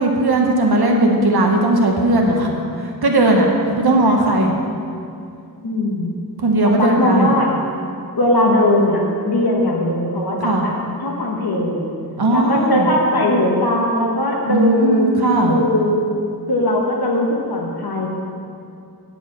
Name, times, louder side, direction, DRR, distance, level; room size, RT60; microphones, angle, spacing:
voice 1, 0.0-4.5 6.4-7.3 10.4-10.7 12.2-12.9 14.5-15.6, right 2 dB, 75° right, 0 dB, 1.1 m, -17 dB
voice 2, 5.6-6.1 6.6-7.5 8.2-10.7 11.0-11.9 12.3-16.0 16.5-18.1, left 1 dB, 70° left, -1 dB, 1.2 m, -19 dB
10.0 x 4.5 x 7.4 m, 2.5 s
wide cardioid pair, 70°, 39 cm